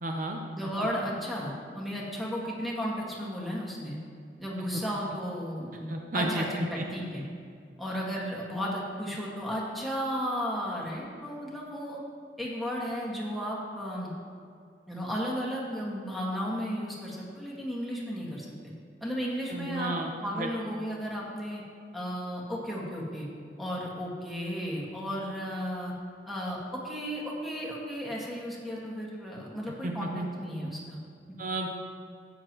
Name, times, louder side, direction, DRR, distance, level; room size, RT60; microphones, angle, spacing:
voice 1, 0.0-0.4 4.7-4.8 5.9-6.9 19.5-20.1 20.4-20.5 29.8-30.3 31.4-31.7, right 1 dB, 50° right, 2 dB, 0.7 m, -32 dB
voice 2, 0.6-4.0 4.4-7.3 7.8-12.0 12.4-14.1 14.9-18.5 19.0-21.6 21.9-23.3 23.6-25.9 26.3-26.6 26.8-31.0 31.3-31.4, equal, ahead, -4 dB, 1.8 m, -34 dB
13.0 x 9.0 x 3.0 m, 2.3 s
head